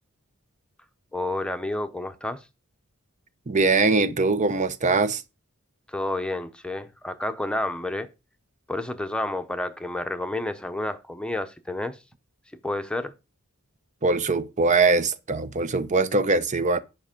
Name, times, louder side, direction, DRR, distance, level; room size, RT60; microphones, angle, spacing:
voice 1, 1.1-2.4 5.9-8.1 8.7-12.0 12.6-13.1, left 1 dB, 5° left, 0.8 m, -30 dB
voice 2, 3.5-5.2 14.0-16.8, right 3 dB, 35° right, 0.7 m, -22 dB
10.0 x 5.3 x 5.1 m
head